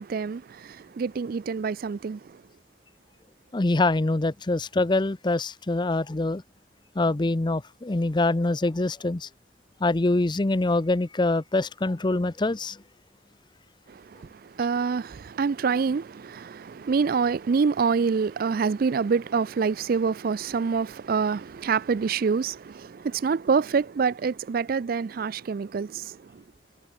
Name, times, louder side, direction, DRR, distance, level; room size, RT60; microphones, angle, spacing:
voice 1, 0.0-2.4 13.9-26.4, right 5 dB, 55° right, 0.4 m, -26 dB
voice 2, 3.5-6.4 7.0-9.3 9.8-12.8, left 2 dB, 25° left, 0.6 m, -24 dB
head